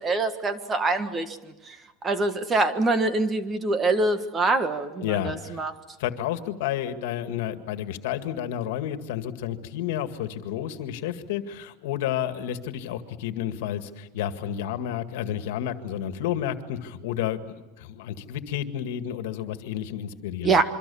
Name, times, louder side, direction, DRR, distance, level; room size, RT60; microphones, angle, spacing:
voice 1, 0.0-1.8 2.0-5.7 20.4-20.6, right 3 dB, 20° right, 10 dB, 1.5 m, -25 dB
voice 2, 5.0-5.6 6.0-17.4 17.8-20.6, left 10 dB, 75° left, 9 dB, 2.0 m, -31 dB
27.0 x 24.5 x 7.1 m, 1.0 s
supercardioid pair, 160°, 0 cm